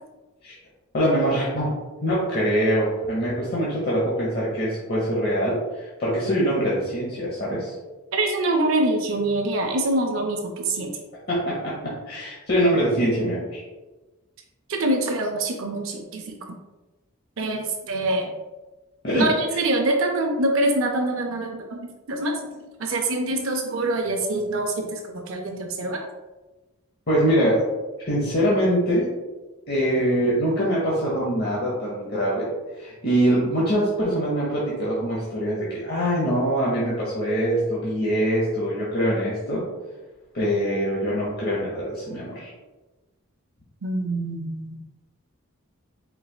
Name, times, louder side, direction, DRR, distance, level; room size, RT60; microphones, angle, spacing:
voice 1, 0.9-1.7 2.0-7.7 11.3-13.6 19.0-19.3 27.1-27.6 28.1-29.1 29.7-32.5 32.8-39.6 40.3-42.5, equal, 45° left, -6 dB, 0.9 m, -23 dB
voice 2, 8.1-10.9 14.7-16.4 17.4-18.3 19.1-22.5 22.8-26.0 43.8-44.8, right 2 dB, 65° right, 3 dB, 0.5 m, -25 dB
4.6 x 4.0 x 2.3 m, 1.2 s
head